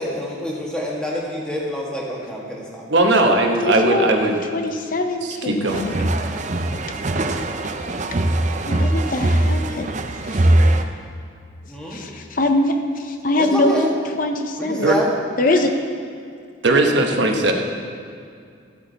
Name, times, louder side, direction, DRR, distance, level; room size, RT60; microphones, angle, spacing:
voice 1, 0.0-3.1 11.7-12.1 13.4-13.9 14.6-15.1, equal, 5° left, -4 dB, 1.6 m, -27 dB
voice 2, 2.9-4.4 5.2-6.1 14.8-14.9 16.6-17.5, right 2 dB, 65° right, 2 dB, 1.1 m, -18 dB
voice 3, 3.6-5.9 8.4-9.9 10.3-10.5 11.9-13.7 14.2-14.9 15.4-15.7, left 2 dB, 45° left, 6 dB, 0.6 m, -23 dB
sound 1, 5.7-10.8, right 1 dB, 40° right, 0.5 m, -21 dB
14.0 x 8.3 x 4.0 m, 2.3 s
head